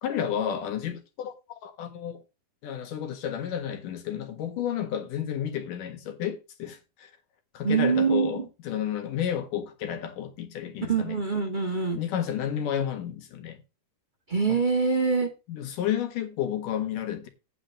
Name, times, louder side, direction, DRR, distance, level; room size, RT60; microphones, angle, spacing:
voice 1, 0.0-1.3 1.6-2.2 2.6-7.1 7.5-11.2 11.9-13.6 14.5-14.6 15.5-17.3, left 9 dB, 75° left, 3.1 m, -31 dB
voice 2, 7.6-8.5 10.9-12.0 14.3-15.3, right 5 dB, 30° right, 0.8 m, -24 dB
9.1 x 5.1 x 7.1 m
omnidirectional pair, 3.9 m